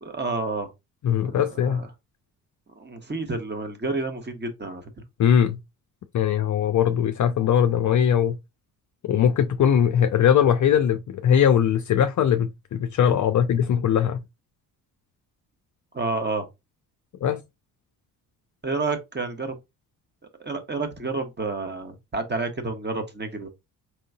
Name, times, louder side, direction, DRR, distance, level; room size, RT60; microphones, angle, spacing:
voice 1, 0.0-0.7 1.2-1.9 2.8-4.9 15.9-16.5 18.6-19.6 20.4-23.5, right 3 dB, 20° right, 1.2 m, -30 dB
voice 2, 1.0-1.9 5.2-5.6 6.1-8.4 9.0-14.2 17.2-17.4, left 9 dB, 40° left, 0.5 m, -20 dB
4.6 x 3.7 x 2.3 m
hypercardioid pair, 50°, 48 cm